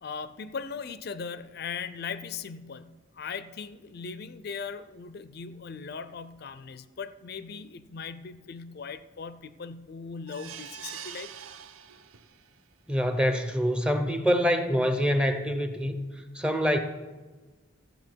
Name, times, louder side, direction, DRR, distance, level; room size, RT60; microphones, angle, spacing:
voice 1, 0.0-11.3, left 5 dB, 50° left, 13 dB, 0.4 m, -39 dB
sound 1, 10.3-12.5 13.0-13.1 13.4-13.5, right 9 dB, 80° right, 0.6 m, -44 dB
voice 2, 12.9-16.8, equal, 5° right, 7 dB, 0.6 m, -25 dB
14.5 x 8.0 x 4.5 m, 1.3 s
head